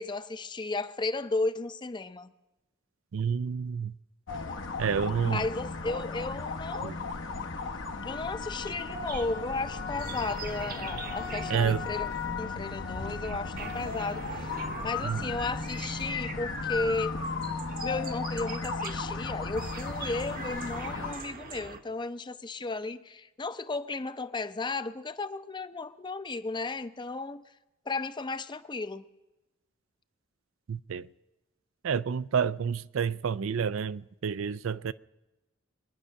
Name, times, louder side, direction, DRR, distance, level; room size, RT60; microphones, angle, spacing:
voice 1, 0.0-2.3 5.2-6.9 8.0-14.5 14.8-17.2 17.8-27.4 27.9-29.1, left 3 dB, 25° left, 0.6 m, -34 dB
voice 2, 3.1-3.9 4.8-5.4 6.8-7.0 11.5-11.8 15.0-15.4 30.7-31.1 31.8-34.9, right 7 dB, 85° right, 0.4 m, -29 dB
sound 1, 4.3-21.2, left 4 dB, 65° left, 1.0 m, -35 dB
sound 2, 8.6-19.0 19.5-21.8, right 4 dB, 45° right, 1.0 m, -43 dB
23.0 x 9.9 x 6.4 m
head